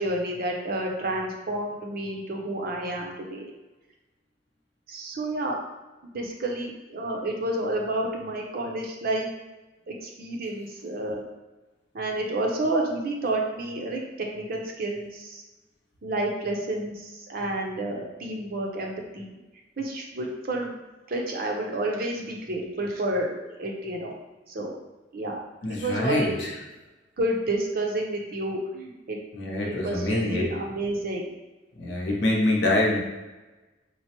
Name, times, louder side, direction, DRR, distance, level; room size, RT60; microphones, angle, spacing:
voice 1, 0.0-3.5 4.9-5.6 6.0-9.3 9.9-11.2 11.9-15.4 16.0-19.3 19.8-20.8 21.1-24.2 24.5-24.7 25.1-25.4 25.7-26.4 27.2-29.2 29.6-31.3, right 1 dB, 50° right, 1 dB, 0.6 m, -30 dB
voice 2, 25.6-26.5 29.3-30.5 31.8-33.0, left 2 dB, 65° left, -2 dB, 0.7 m, -25 dB
4.4 x 2.0 x 2.9 m, 1.1 s
head